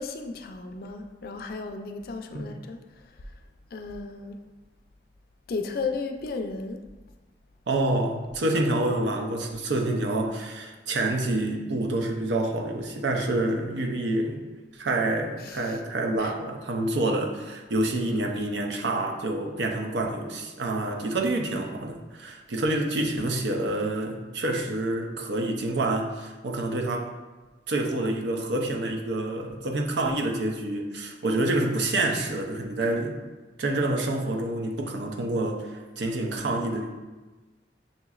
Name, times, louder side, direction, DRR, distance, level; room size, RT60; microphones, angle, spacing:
voice 1, 0.0-2.8 3.7-4.4 5.5-6.8 15.4-15.8 16.2-16.3, left 4 dB, 55° left, 6 dB, 0.3 m, -34 dB
voice 2, 7.7-14.4 14.7-27.1 27.7-33.1 33.6-35.7 36.0-36.9, right 2 dB, 80° right, 2 dB, 0.6 m, -27 dB
6.5 x 2.9 x 2.4 m, 1.2 s
head